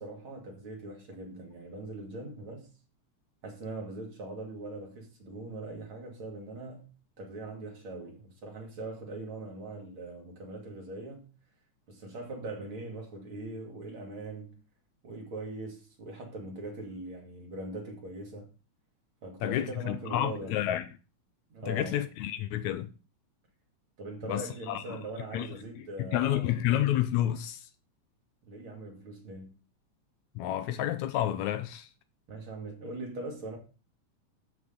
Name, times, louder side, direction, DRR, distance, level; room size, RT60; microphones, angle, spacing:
voice 1, 0.0-2.7 3.4-6.9 7.2-11.3 11.9-14.6 15.0-18.5 19.2-20.6 21.5-22.0 24.0-26.6 28.4-29.5 32.3-33.6, right 2 dB, 45° right, 2.9 m, -41 dB
voice 2, 19.4-20.9 21.7-22.9 24.3-25.0 25.3-25.5 26.0-27.7 30.4-31.9, left 12 dB, 80° left, 1.9 m, -30 dB
13.0 x 6.1 x 3.8 m
omnidirectional pair, 3.4 m